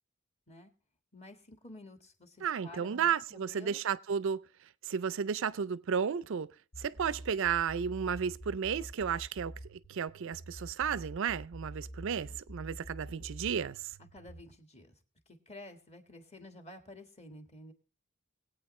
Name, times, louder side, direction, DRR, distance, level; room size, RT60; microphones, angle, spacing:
voice 1, 1.1-3.8 14.1-15.0 15.3-17.7, left 1 dB, 30° left, 1.6 m, -51 dB
voice 2, 2.4-4.4 4.8-6.5 6.8-13.9, right 7 dB, 65° right, 0.4 m, -33 dB
sound 1, 6.7-14.4, right 1 dB, 60° left, 1.2 m, -47 dB
21.5 x 8.5 x 3.1 m
head